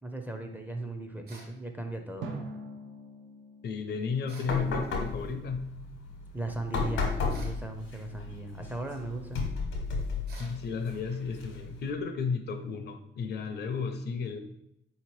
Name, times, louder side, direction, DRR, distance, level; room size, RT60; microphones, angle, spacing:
voice 1, 0.0-2.3 6.3-9.4, right 2 dB, 10° right, 4 dB, 0.4 m, -37 dB
sound 1, 1.3-1.6 4.3-4.6 7.3-7.6 10.3-10.6, right 2 dB, 50° right, 0.9 m, -50 dB
Drum, 2.2-5.1, right 2 dB, 80° right, 0.5 m, -44 dB
voice 2, 3.6-5.7 10.4-14.4, left 5 dB, 55° left, 7 dB, 0.5 m, -33 dB
sound 2, 4.4-11.9, left 4 dB, 85° left, 0.9 m, -35 dB
3.8 x 2.8 x 3.1 m, 0.78 s
cardioid pair, 90°, 20 cm